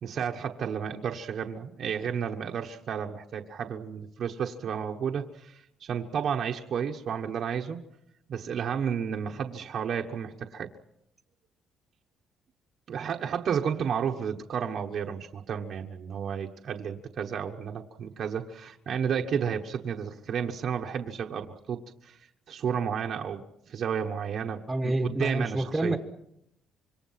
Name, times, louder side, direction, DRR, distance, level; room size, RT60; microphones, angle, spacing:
voice 1, 0.0-7.8 8.3-10.7 12.9-26.0, right 7 dB, 50° right, 2 dB, 1.2 m, -32 dB
voice 2, 24.7-26.0, right 1 dB, 10° right, 5 dB, 1.4 m, -28 dB
26.5 x 24.0 x 5.8 m, 0.80 s
cardioid pair, 155°, 0 cm